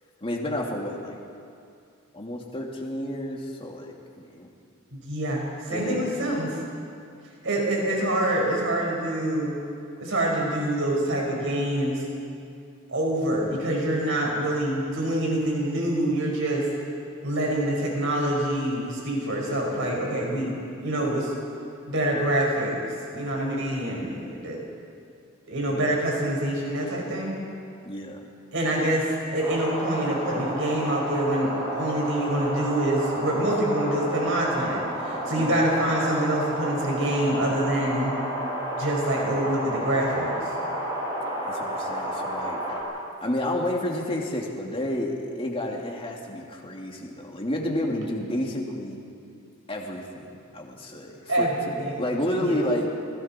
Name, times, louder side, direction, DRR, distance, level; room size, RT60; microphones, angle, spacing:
voice 1, 0.2-1.2 2.1-4.5 5.7-6.1 7.9-8.0 25.7-25.9 27.9-28.2 35.4-35.6 41.5-42.8 43.2-49.0 49.7-50.3 50.5-52.9, left 1 dB, 25° left, -1 dB, 2.7 m, -30 dB
voice 2, 4.9-6.5 7.4-9.6 10.0-12.0 12.9-16.6 17.2-21.3 21.8-22.8 23.1-24.6 25.5-27.4 28.5-38.2 38.7-40.5 51.3-52.0 52.4-52.6, right 1 dB, 65° right, -2 dB, 5.5 m, -26 dB
sound 1, 29.4-42.8, right 1 dB, 20° right, 6.5 m, -31 dB
28.5 x 20.5 x 4.5 m, 2.5 s
head